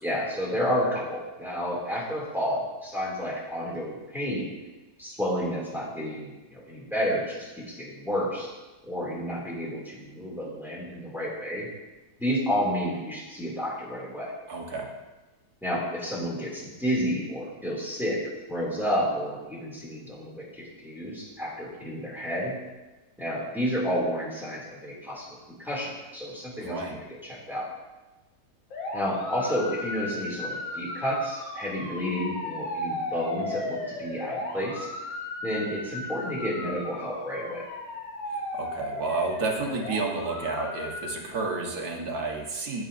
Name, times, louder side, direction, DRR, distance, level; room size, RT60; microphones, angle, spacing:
voice 1, 0.0-4.5 5.0-8.5 8.9-11.7 12.2-14.3 15.6-18.2 18.5-22.5 23.2-27.7 28.9-34.9 35.4-37.6, equal, ahead, -6 dB, 2.5 m, -30 dB
voice 2, 14.5-14.9 26.6-27.0 38.3-42.8, right 3 dB, 55° right, 0 dB, 1.8 m, -31 dB
sound 1, 28.7-41.2, left 2 dB, 75° left, 2.1 m, -36 dB
15.0 x 6.6 x 2.7 m, 1.1 s
omnidirectional pair, 2.0 m